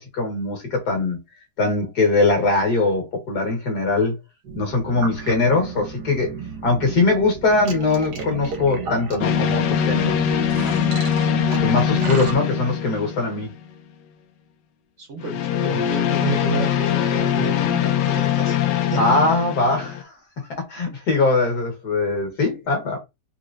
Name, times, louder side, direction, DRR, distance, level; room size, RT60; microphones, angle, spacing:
voice 1, 0.1-1.2 1.6-4.1 4.5-6.3 6.6-10.8 11.6-13.5 19.0-20.1 20.7-23.0, left 3 dB, 65° left, 2.0 m, -21 dB
sound 1, 4.4-12.3, right 5 dB, 70° right, 1.5 m, -33 dB
sound 2, 9.2-13.7 15.2-20.0, left 9 dB, 80° left, 1.2 m, -22 dB
voice 2, 15.0-18.6 18.9-19.0, right 5 dB, 55° right, 1.0 m, -30 dB
4.2 x 3.0 x 2.5 m
omnidirectional pair, 1.9 m